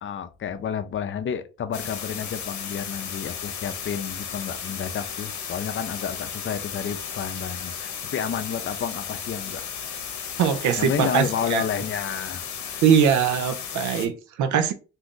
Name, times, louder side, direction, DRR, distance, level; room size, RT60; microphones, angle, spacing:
voice 1, 0.0-9.6 10.8-12.8, left 8 dB, 40° left, 0.5 m, -31 dB
sound 1, 1.7-14.1, left 7 dB, 70° left, 0.8 m, -34 dB
voice 2, 10.4-11.6 12.8-14.7, right 8 dB, 75° right, 0.6 m, -21 dB
2.6 x 2.4 x 3.7 m
cardioid pair, 90°, 30 cm